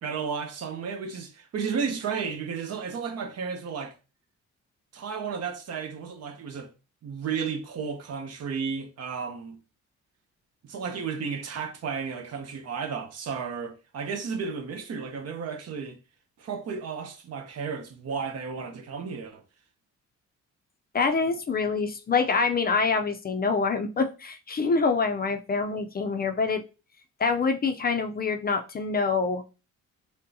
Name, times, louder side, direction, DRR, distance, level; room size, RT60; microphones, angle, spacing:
voice 1, 0.0-3.9 4.9-6.7 7.0-9.6 10.6-16.0 16.4-19.4, right 6 dB, 55° right, 0.8 m, -33 dB
voice 2, 20.9-26.6 27.2-29.4, left 4 dB, 30° left, 0.5 m, -26 dB
5.2 x 2.2 x 2.7 m
cardioid pair, 90°, 30 cm